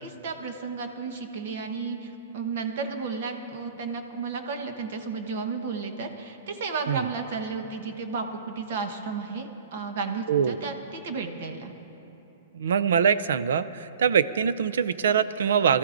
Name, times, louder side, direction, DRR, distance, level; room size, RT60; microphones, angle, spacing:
voice 1, 0.0-11.7, right 4 dB, 55° right, 5 dB, 1.1 m, -33 dB
voice 2, 12.5-15.8, right 7 dB, 85° right, 16 dB, 0.4 m, -23 dB
23.0 x 13.5 x 2.6 m, 3.0 s
hypercardioid pair, 170°, 0 cm